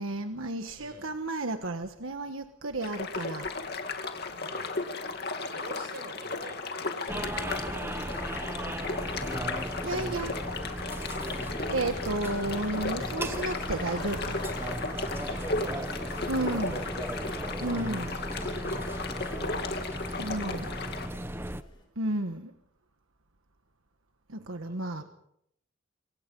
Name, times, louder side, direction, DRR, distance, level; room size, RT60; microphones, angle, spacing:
voice 1, 0.0-3.5 9.8-10.3 11.7-14.4 16.3-16.8 17.6-18.2 20.2-20.8 22.0-22.5 24.3-25.0, right 2 dB, 85° right, 7 dB, 1.4 m, -32 dB
voice 2, 0.8-1.2 4.3-4.8 5.4-8.7 9.1-9.5 10.5-10.7 15.3-17.3 24.6-25.0, right 2 dB, 50° right, 6 dB, 6.0 m, -49 dB
sound 1, 2.8-21.1, left 3 dB, 50° left, 2.4 m, -35 dB
sound 2, 7.1-21.6, right 1 dB, 10° right, 0.9 m, -36 dB
Applause / Crowd, 10.9-21.8, left 2 dB, 25° left, 7.8 m, -50 dB
27.0 x 24.5 x 5.5 m, 0.74 s
head